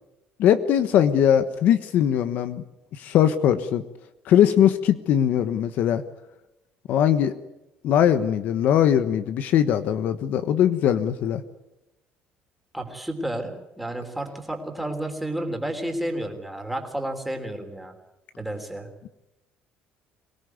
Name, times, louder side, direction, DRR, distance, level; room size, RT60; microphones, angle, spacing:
voice 1, 0.4-2.6 2.9-3.8 4.2-6.0 6.9-7.3 7.8-11.4, left 10 dB, 55° left, 10 dB, 1.2 m, -20 dB
voice 2, 12.7-17.9 18.4-18.9, right 1 dB, 5° right, 4 dB, 3.5 m, -31 dB
24.5 x 18.0 x 9.5 m, 0.93 s
cardioid pair, 160°, 3 cm